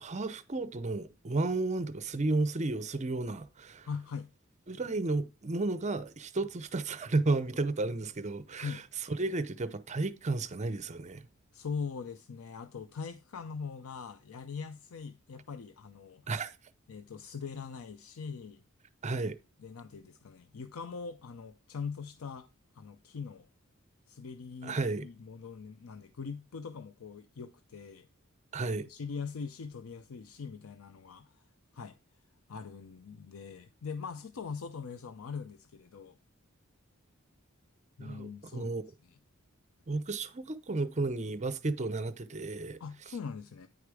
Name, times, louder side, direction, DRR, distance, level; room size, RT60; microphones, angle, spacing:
voice 1, 0.0-3.9 4.7-8.8 9.1-11.3 16.3-16.5 19.0-19.4 24.6-25.1 28.5-28.9 38.0-38.8 39.9-42.8, right 3 dB, 35° right, 0.6 m, -33 dB
voice 2, 3.8-4.3 8.6-8.8 11.5-16.3 16.9-18.6 19.6-22.5 22.7-23.5 24.1-28.1 28.9-31.4 31.7-32.0 32.5-36.2 38.0-38.8 39.1-39.2 42.8-43.7, left 5 dB, 85° left, 0.5 m, -42 dB
9.4 x 5.0 x 4.7 m
head